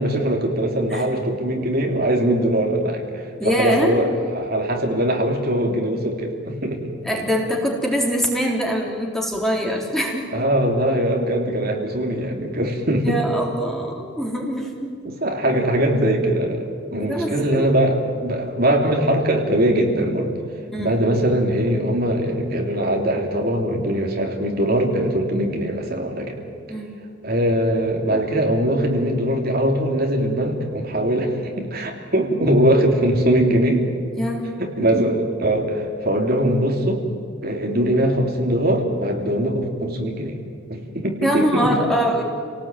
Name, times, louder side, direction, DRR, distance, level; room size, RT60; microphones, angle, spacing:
voice 1, 0.0-6.9 10.3-13.2 15.0-16.7 16.9-20.3 20.8-26.4 27.2-33.9 34.6-37.0 37.4-40.4 40.7-41.8, right 1 dB, 45° right, 2 dB, 3.1 m, -21 dB
voice 2, 3.4-4.0 7.0-10.3 13.0-14.9 17.0-17.7 20.7-20.9 26.7-27.0 34.2-34.5 41.2-42.2, equal, ahead, 0 dB, 3.6 m, -23 dB
30.0 x 19.0 x 9.2 m, 2.3 s
head